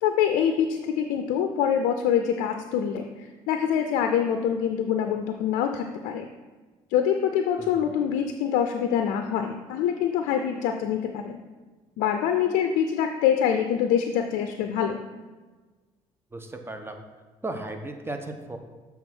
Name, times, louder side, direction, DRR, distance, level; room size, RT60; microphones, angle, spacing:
voice 1, 0.0-3.1 3.5-6.3 6.9-11.4 12.0-15.0, left 8 dB, 80° left, 6 dB, 0.5 m, -25 dB
voice 2, 7.6-7.9 16.3-17.0 17.4-18.6, right 2 dB, 15° right, 5 dB, 1.0 m, -36 dB
6.9 x 3.6 x 6.1 m, 1.3 s
supercardioid pair, 60°, 14 cm